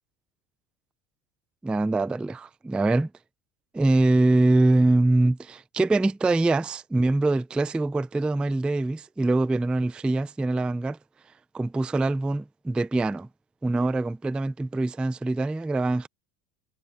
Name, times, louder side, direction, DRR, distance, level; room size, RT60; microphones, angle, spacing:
voice 1, 1.6-3.1 3.7-11.0 11.5-13.3 13.6-16.1, right 2 dB, 5° right, 0.3 m, -24 dB
supercardioid pair, 115°, 41 cm